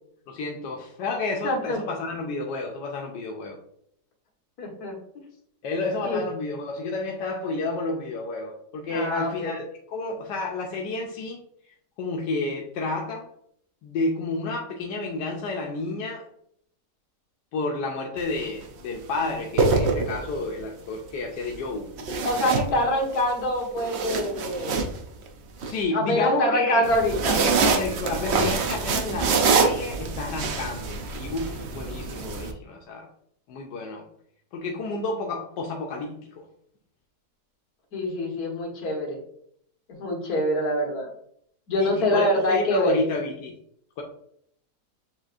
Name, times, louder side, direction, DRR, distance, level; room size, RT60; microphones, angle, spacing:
voice 1, 0.3-3.6 5.6-11.4 12.0-13.3 13.8-16.3 17.5-21.9 25.6-26.9 27.4-33.1 33.5-34.0 34.5-36.4 41.7-43.6 44.0-44.1, left 3 dB, 80° left, 0 dB, 1.2 m, -30 dB
voice 2, 1.4-1.8 4.6-5.0 6.0-6.2 8.9-9.6 22.2-24.8 25.9-27.4 37.9-39.2 39.9-41.1 41.7-43.0, left 1 dB, 60° left, -1 dB, 1.8 m, -25 dB
sound 1, 18.2-18.4 19.3-20.5 22.0-23.2 23.6-25.7 26.8-32.5, right 4 dB, 70° right, 0.6 m, -25 dB
7.3 x 2.9 x 2.5 m, 0.71 s
omnidirectional pair, 1.8 m